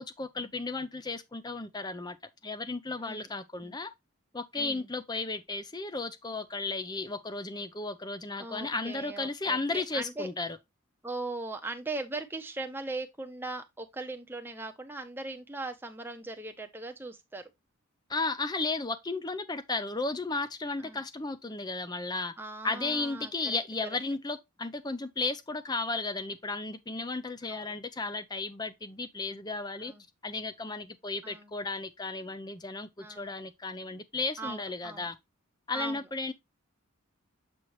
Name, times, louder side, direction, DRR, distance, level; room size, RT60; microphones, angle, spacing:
voice 1, 0.0-2.2 2.4-3.9 4.3-10.6 18.1-22.3 22.6-29.9 30.2-35.2 35.7-36.3, left 3 dB, 20° left, 0.6 m, -34 dB
voice 2, 3.0-3.3 3.6-3.8 4.6-4.9 8.4-10.3 11.0-17.5 20.8-21.0 22.4-23.6 27.5-27.7 29.8-30.0 31.2-31.5 33.0-33.3 34.4-35.1 35.7-36.1, right 2 dB, 10° right, 0.8 m, -39 dB
7.6 x 4.4 x 3.1 m
head